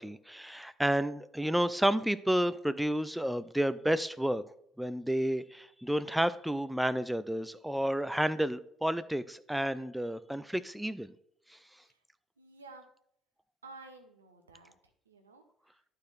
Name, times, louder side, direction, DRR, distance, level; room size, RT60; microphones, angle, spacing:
voice 1, 0.0-4.4 4.8-11.1, equal, 5° right, 15 dB, 0.4 m, -31 dB
voice 2, 12.4-12.9 13.6-14.7 15.1-15.4, right 3 dB, 90° right, 6 dB, 0.8 m, -52 dB
11.0 x 4.4 x 3.2 m, 0.72 s
figure-of-eight pair, 55°, 0 cm